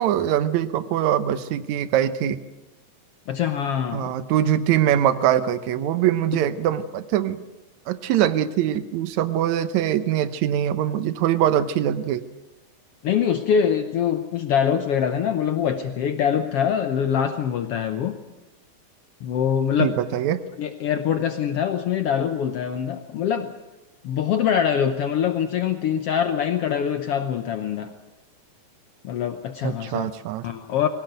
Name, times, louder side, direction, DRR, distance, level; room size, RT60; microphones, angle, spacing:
voice 1, 0.0-2.4 3.9-7.4 7.9-12.2 19.8-20.4 29.6-30.4, right 11 dB, 75° right, 13 dB, 2.2 m, -23 dB
voice 2, 3.3-4.1 6.3-6.4 13.0-18.2 19.2-19.9 20.6-23.5 24.0-27.9 29.0-30.1 30.4-30.9, left 8 dB, 65° left, 8 dB, 1.7 m, -24 dB
22.0 x 17.5 x 9.2 m, 1.0 s
omnidirectional pair, 3.4 m